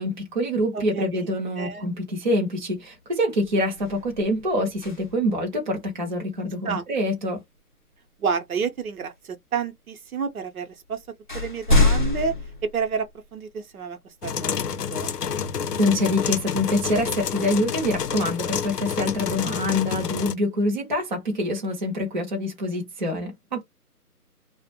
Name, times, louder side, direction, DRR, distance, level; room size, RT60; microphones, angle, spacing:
voice 1, 0.0-7.4 15.8-23.6, left 1 dB, 30° right, 0.5 m, -25 dB
voice 2, 0.7-1.3 1.6-1.9 6.6-6.8 8.2-11.0 11.3-12.3 12.7-15.1, right 6 dB, 65° right, 0.7 m, -30 dB
sound 1, 2.7-3.0 3.3-5.4 7.6-7.7 8.6-9.3 10.2-10.3 10.7-13.5 14.1-14.2 16.8-19.0, left 2 dB, 35° left, 0.4 m, -27 dB
sound 2, 14.2-20.3, left 7 dB, 80° left, 0.6 m, -29 dB
2.3 x 2.1 x 2.7 m
figure-of-eight pair, 150°, 46 cm